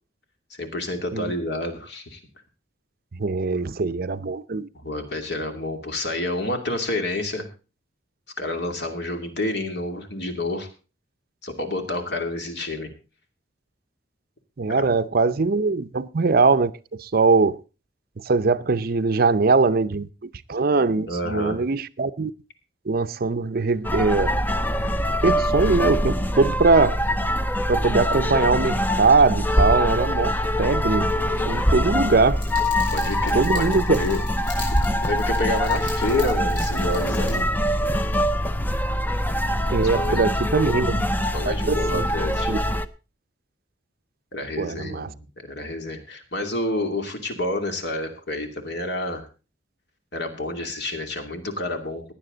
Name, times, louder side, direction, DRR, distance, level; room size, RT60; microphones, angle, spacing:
voice 1, 0.5-2.2 4.7-7.5 8.4-10.7 11.4-12.9 14.7-14.9 21.1-21.6 32.9-34.2 35.1-37.5 39.8-40.3 41.3-42.5 44.3-45.1 45.4-49.3 50.1-52.0, left 1 dB, 60° left, 2.7 m, -29 dB
voice 2, 3.2-4.7 14.6-16.7 17.0-17.6 18.3-22.3 22.9-24.3 25.2-27.0 27.7-31.1 31.5-32.4 33.3-34.0 39.7-41.1 41.4-42.1 42.5-42.6 44.6-45.1, right 4 dB, 50° right, 0.6 m, -21 dB
sound 1, 23.8-42.9, equal, 10° left, 0.6 m, -23 dB
sound 2, 32.3-37.4, left 3 dB, 75° left, 6.0 m, -41 dB
16.5 x 10.0 x 3.9 m
head